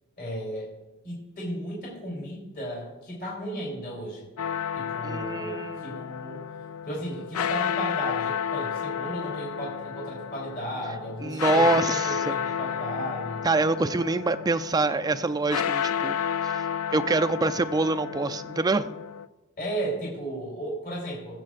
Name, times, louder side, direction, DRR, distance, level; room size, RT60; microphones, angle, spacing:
voice 1, 0.2-0.7 1.0-4.3 4.7-6.4 6.9-13.5 19.6-21.4, right 1 dB, 45° left, -4 dB, 3.3 m, -35 dB
sound 1, 4.4-19.3, left 8 dB, 75° left, 0.4 m, -31 dB
voice 2, 5.0-6.0 11.2-12.3 13.4-16.1 16.4-18.9, right 3 dB, 20° right, 10 dB, 0.4 m, -25 dB
21.5 x 7.4 x 2.5 m, 1.1 s
head